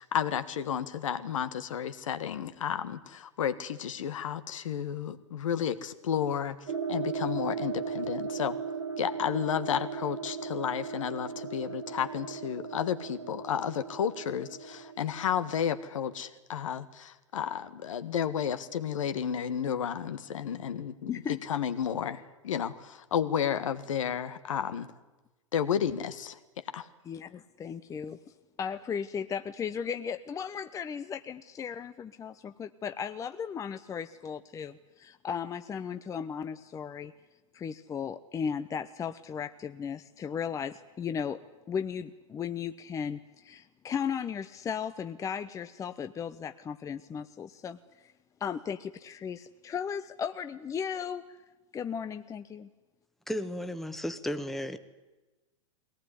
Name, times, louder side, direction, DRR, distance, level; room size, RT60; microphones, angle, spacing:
voice 1, 0.0-6.6 6.9-8.6 9.0-21.2 21.5-24.9 25.5-26.4 26.7-26.9, left 8 dB, 75° left, 11 dB, 1.7 m, -32 dB
sound 1, 6.7-16.2, right 6 dB, 85° right, 1.6 m, -37 dB
voice 2, 21.1-21.4 27.1-28.3 28.6-37.1 37.5-41.4 41.7-48.1 48.4-51.4 51.7-52.7, left 7 dB, 20° left, 9 dB, 0.8 m, -36 dB
voice 3, 53.3-54.8, equal, ahead, 8 dB, 1.4 m, -34 dB
21.5 x 18.5 x 9.9 m, 1.1 s
hypercardioid pair, 115°, 17 cm